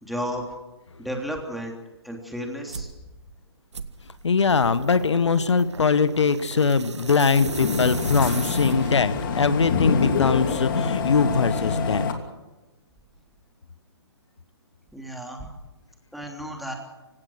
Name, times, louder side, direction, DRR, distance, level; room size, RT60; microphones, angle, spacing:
voice 1, 0.0-0.4 1.0-1.7 2.0-2.9 14.9-15.5 16.1-16.7, equal, ahead, 1 dB, 3.3 m, -33 dB
sound 1, 2.7-3.0 3.7-9.2, right 5 dB, 80° right, 1.6 m, -37 dB
voice 2, 4.2-12.2, left 5 dB, 80° left, 14 dB, 1.3 m, -22 dB
sound 2, 7.1-12.1, left 5 dB, 45° left, 3.0 m, -26 dB
27.5 x 17.0 x 6.5 m, 1.1 s
hypercardioid pair, 140°, 15 cm